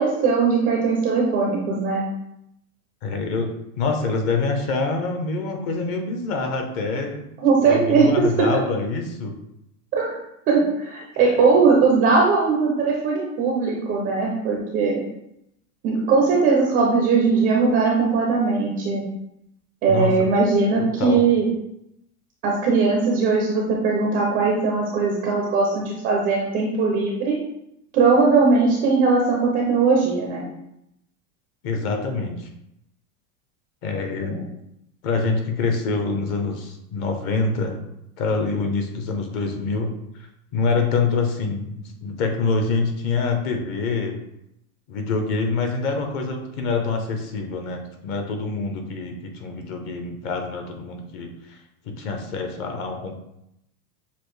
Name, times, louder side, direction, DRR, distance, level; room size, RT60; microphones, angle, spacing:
voice 1, 0.0-2.0 7.4-8.1 9.9-10.2 10.5-15.0 15.8-19.0 19.8-21.5 22.4-27.3 27.9-30.5 34.2-34.4, right 4 dB, 20° right, -2 dB, 0.4 m, -19 dB
voice 2, 3.0-3.5 3.8-7.3 7.6-9.3 11.1-11.5 19.9-20.3 20.8-21.2 31.6-32.5 33.8-34.4 35.0-37.8 38.2-39.9 40.5-44.2 44.9-51.6 51.9-53.1, left 4 dB, 40° left, 4 dB, 0.8 m, -25 dB
6.9 x 2.4 x 3.1 m, 0.81 s
supercardioid pair, 145°, 45 cm